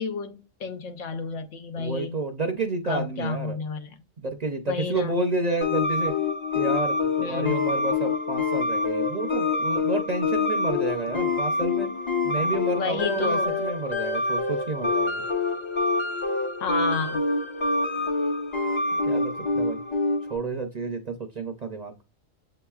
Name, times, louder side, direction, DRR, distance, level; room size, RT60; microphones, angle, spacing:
voice 1, 0.0-2.2 2.9-4.0 4.7-5.2 7.2-7.7 12.4-13.6 16.6-17.2, left 5 dB, 80° left, 1.1 m, -31 dB
voice 2, 1.8-3.6 4.2-6.1 6.5-11.9 12.2-15.2 19.0-19.8 20.3-22.0, right 3 dB, 50° right, 0.5 m, -30 dB
sound 1, 5.6-20.4, left 3 dB, 30° left, 0.6 m, -26 dB
7.4 x 2.8 x 2.3 m
omnidirectional pair, 1.3 m